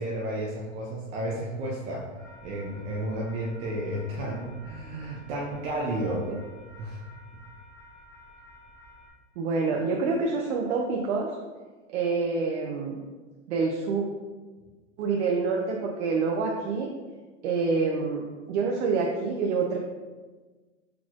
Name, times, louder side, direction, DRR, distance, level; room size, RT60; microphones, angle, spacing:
voice 1, 0.0-2.1 2.4-6.2 6.8-7.0, right 1 dB, 20° right, -4 dB, 0.3 m, -32 dB
sound 1, 2.2-9.1, left 1 dB, 5° left, 1.3 m, -51 dB
voice 2, 9.4-11.3 11.9-13.0 13.5-14.1 15.0-16.9 17.4-19.8, right 4 dB, 65° right, -1 dB, 0.7 m, -27 dB
4.4 x 4.1 x 2.4 m, 1.3 s
hypercardioid pair, 130°, 37 cm